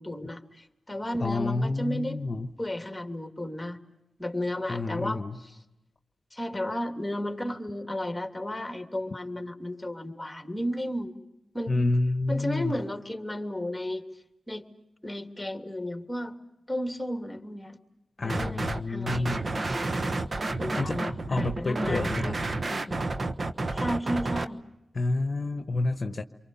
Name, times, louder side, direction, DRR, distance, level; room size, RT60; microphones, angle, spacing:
voice 1, 0.0-2.2 2.6-3.8 4.2-5.5 6.3-11.1 11.5-11.8 12.3-14.0 14.5-14.6 15.0-16.4 16.7-17.8 18.2-19.4 20.0-20.2 20.6-22.4 22.6-23.0 23.7-24.6, left 1 dB, 10° left, 4 dB, 2.8 m, -33 dB
voice 2, 1.2-2.5 4.7-5.4 11.7-12.8 18.2-19.4 20.8-21.0 21.3-22.4 24.9-26.2, left 2 dB, 45° left, 7 dB, 1.1 m, -29 dB
sound 1, 18.3-18.8 19.1-24.4, right 2 dB, 45° right, 1.2 m, -30 dB
28.5 x 23.5 x 7.0 m, 0.89 s
supercardioid pair, 40°, 0 cm